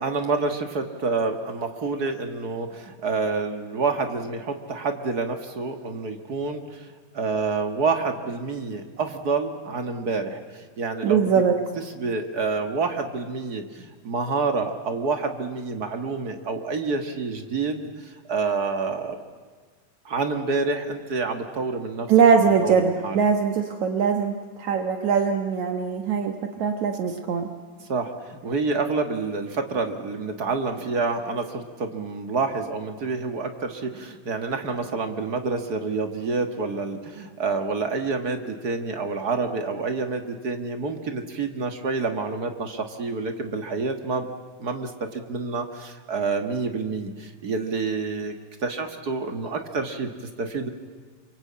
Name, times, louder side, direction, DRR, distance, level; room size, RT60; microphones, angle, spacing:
voice 1, 0.0-11.3 11.9-19.2 20.0-22.1 22.6-23.2 27.8-44.3 44.6-48.3 48.6-50.7, right 4 dB, 40° right, 6 dB, 1.5 m, -28 dB
voice 2, 11.0-11.6 22.1-27.5, right 6 dB, 65° right, 5 dB, 2.5 m, -21 dB
28.0 x 24.0 x 8.6 m, 1.5 s
omnidirectional pair, 3.7 m